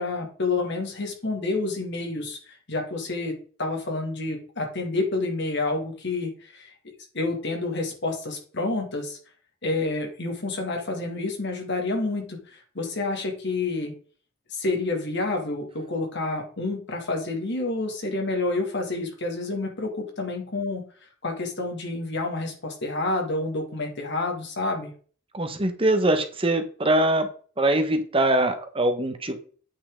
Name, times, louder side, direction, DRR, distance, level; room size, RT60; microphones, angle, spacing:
voice 1, 0.0-6.7 7.1-9.2 9.6-13.9 14.5-20.8 21.2-24.9, left 2 dB, 60° left, 3 dB, 2.2 m, -29 dB
voice 2, 25.3-27.3 27.6-29.4, right 1 dB, 25° right, 7 dB, 1.2 m, -23 dB
8.8 x 5.7 x 3.8 m, 0.42 s
head